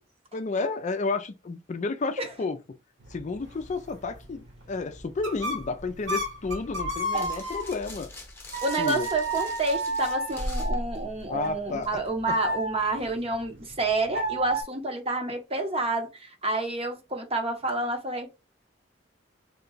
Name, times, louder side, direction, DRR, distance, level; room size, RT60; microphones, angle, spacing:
voice 1, 0.3-2.6 3.1-8.1 8.8-9.1 11.3-11.9 12.3-12.4, left 3 dB, 40° left, 0.4 m, -31 dB
sound 1, 3.0-8.0 8.5-14.6, right 2 dB, 65° right, 1.6 m, -34 dB
sound 2, 5.8-12.1, left 1 dB, 15° left, 0.9 m, -38 dB
voice 2, 8.6-18.3, right 2 dB, 30° right, 0.9 m, -29 dB
3.7 x 2.3 x 3.9 m
head